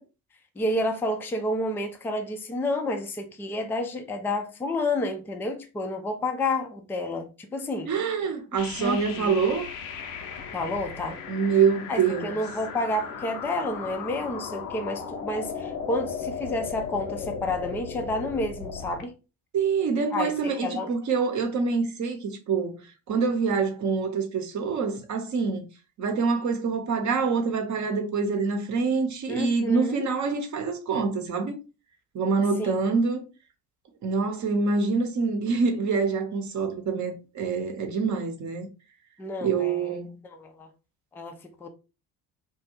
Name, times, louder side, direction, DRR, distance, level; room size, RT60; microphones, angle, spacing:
voice 1, 0.6-7.9 8.8-9.4 10.5-11.2 11.9-19.1 20.1-20.9 29.3-30.1 32.6-32.7 39.2-40.0 40.3-40.7 41.1-41.7, left 1 dB, 5° left, 0.3 m, -30 dB
voice 2, 7.9-9.7 11.3-12.3 19.5-25.7 26.0-31.6 32.1-33.2 34.0-38.7 39.4-40.2, right 5 dB, 40° right, 0.8 m, -26 dB
sound 1, 8.6-19.0, left 6 dB, 75° left, 0.6 m, -36 dB
2.5 x 2.2 x 2.9 m
hypercardioid pair, 60°, 45 cm